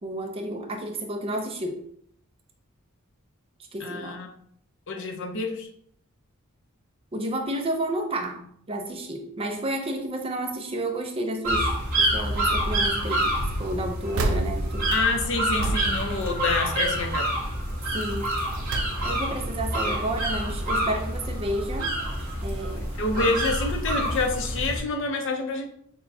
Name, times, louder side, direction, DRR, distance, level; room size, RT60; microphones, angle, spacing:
voice 1, 0.0-1.8 3.7-4.2 7.1-14.9 17.9-18.3 18.7-21.9 22.4-22.9 23.1-23.3, right 1 dB, 25° right, 3 dB, 0.5 m, -31 dB
voice 2, 3.8-4.3 4.9-5.7 14.9-17.3 23.0-25.7, left 3 dB, 60° left, 3 dB, 0.6 m, -27 dB
sound 1, 11.4-24.8, right 1 dB, 40° right, 1.4 m, -27 dB
sound 2, 12.3-12.9 13.3-17.0 17.4-17.7 18.2-19.5 20.0-20.9 21.6-21.7 22.0-22.1, right 2 dB, 85° right, 0.4 m, -33 dB
6.0 x 2.2 x 2.7 m, 0.67 s
head